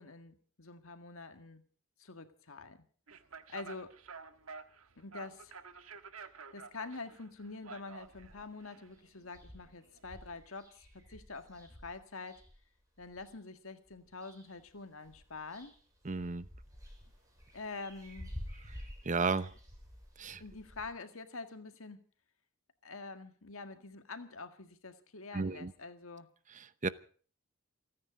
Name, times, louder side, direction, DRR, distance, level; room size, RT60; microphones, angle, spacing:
voice 1, 0.0-1.6 2.0-2.8 3.5-3.9 5.0-5.6 6.5-12.4 13.0-15.7 17.5-18.3 20.4-22.0 22.8-26.3, left 3 dB, 75° left, 8 dB, 1.9 m, -46 dB
sound 1, 3.1-10.4, right 5 dB, 85° right, 1.4 m, -51 dB
sound 2, 8.0-8.6 9.0-9.1 9.3-13.3 13.8-14.7 15.0-20.8, equal, 15° right, 7.0 m, -51 dB
voice 2, 16.0-16.4 19.0-19.5 20.2-20.4 25.3-25.7 26.5-26.9, right 4 dB, 35° right, 15 dB, 0.8 m, -33 dB
28.5 x 9.8 x 5.2 m, 0.43 s
head